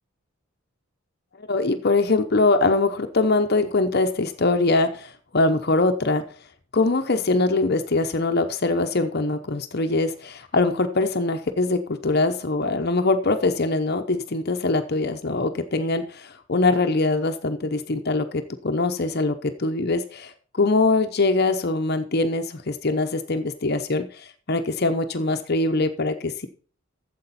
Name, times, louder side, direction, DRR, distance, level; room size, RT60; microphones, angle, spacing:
voice 1, 1.4-6.2 6.7-26.5, left 3 dB, 45° left, 7 dB, 0.8 m, -23 dB
12.0 x 7.8 x 4.2 m, 0.42 s
head